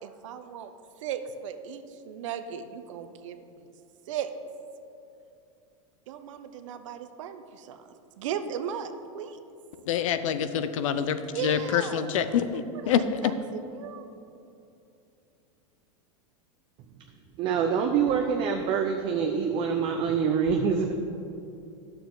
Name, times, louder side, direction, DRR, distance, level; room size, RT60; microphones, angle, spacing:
voice 1, 0.0-0.7 1.0-3.6 4.1-4.3 6.1-7.8 8.2-9.4 11.3-12.1 12.5-13.3 13.7-14.1, right 8 dB, 70° right, 9 dB, 0.7 m, -36 dB
voice 2, 9.9-13.2, left 8 dB, 75° left, 11 dB, 0.6 m, -26 dB
voice 3, 17.4-20.9, right 6 dB, 30° right, 3 dB, 0.5 m, -25 dB
10.5 x 6.8 x 3.9 m, 2.7 s
supercardioid pair, 150°, 17 cm